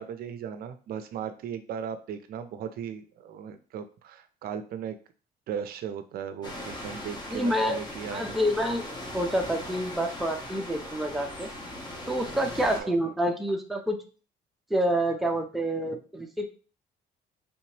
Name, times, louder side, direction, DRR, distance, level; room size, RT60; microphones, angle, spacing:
voice 1, 0.0-5.0 5.5-8.4 12.7-12.9, right 8 dB, 65° right, 9 dB, 0.4 m, -37 dB
sound 1, 6.4-12.8, left 1 dB, 25° left, 0.9 m, -39 dB
voice 2, 7.3-7.8 8.1-8.8 9.1-11.5 12.1-14.0 14.7-16.5, equal, ahead, 3 dB, 0.5 m, -27 dB
3.4 x 3.0 x 2.9 m, 0.37 s
cardioid pair, 110°, 17 cm